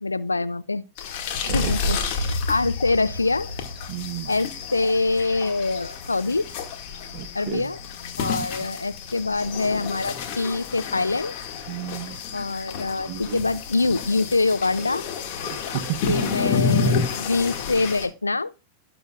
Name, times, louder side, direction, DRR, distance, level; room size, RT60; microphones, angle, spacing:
voice 1, 0.0-0.8 1.5-3.5 4.3-6.4 7.3-7.8 8.2-11.3 12.3-15.0 16.1-18.5, left 3 dB, 80° left, 0.4 m, -25 dB
sound 1, 1.0-18.1, left 5 dB, 45° left, 2.1 m, -30 dB
voice 2, 1.4-2.0 3.9-4.3 7.1-7.7 8.4-8.5 11.7-12.2 13.1-13.4 15.4-16.2, right 14 dB, 45° right, 0.8 m, -33 dB
Boom, 2.2-10.0, left 1 dB, 85° right, 0.8 m, -37 dB
18.0 x 7.0 x 2.4 m
figure-of-eight pair, 90°, 0 cm